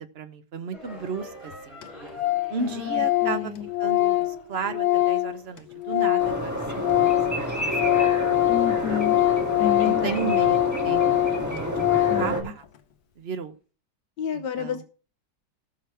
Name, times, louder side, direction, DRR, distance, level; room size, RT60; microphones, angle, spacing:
voice 1, 0.0-2.1 2.5-3.5 3.8-6.6 6.9-7.2 7.6-8.0 8.9-9.3 9.8-11.7 11.9-12.6 13.2-13.6 14.3-14.8, right 5 dB, 45° right, 8 dB, 1.1 m, -34 dB
sound 1, 0.7-11.9, left 1 dB, 40° left, 5.5 m, -48 dB
Organ, 1.2-1.3 1.5-1.6 1.8-1.9 2.2-2.6 2.8-6.4 6.7-12.4, left 17 dB, 65° left, 1.4 m, -23 dB
voice 2, 2.6-3.7 8.5-9.2 9.6-10.3 12.1-12.5 14.2-14.8, left 8 dB, 85° left, 6 dB, 1.6 m, -30 dB
sound 2, 6.2-12.4, right 1 dB, 10° right, 2.0 m, -29 dB
18.0 x 6.1 x 3.4 m, 0.37 s
omnidirectional pair, 1.8 m